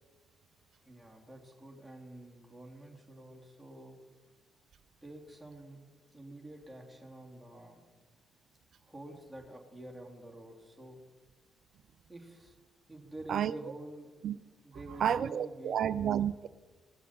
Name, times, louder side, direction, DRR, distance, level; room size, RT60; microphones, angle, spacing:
voice 1, 0.8-4.0 5.0-5.8 6.1-7.8 8.8-11.0 12.1-12.6 12.9-14.3 14.6-16.1, right 1 dB, ahead, 0 dB, 3.5 m, -48 dB
voice 2, 13.3-13.7 14.2-14.4 15.0-16.5, right 9 dB, 55° right, 16 dB, 0.4 m, -31 dB
18.5 x 7.0 x 6.1 m, 1.4 s
figure-of-eight pair, 40°, 0 cm